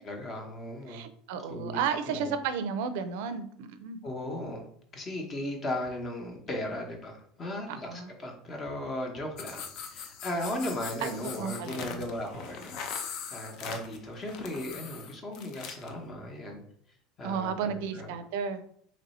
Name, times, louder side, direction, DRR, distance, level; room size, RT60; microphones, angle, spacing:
voice 1, 0.1-1.1 1.5-2.3 4.0-4.6 4.9-12.7 13.0-16.6 17.2-18.1, left 1 dB, 30° left, 2 dB, 0.9 m, -37 dB
voice 2, 0.9-4.0 7.7-8.1 11.0-12.0 17.2-18.6, right 6 dB, 75° right, 10 dB, 0.4 m, -33 dB
sound 1, 9.4-15.9, left 6 dB, 55° left, 0.5 m, -41 dB
3.1 x 2.7 x 4.1 m, 0.62 s
supercardioid pair, 140°, 0 cm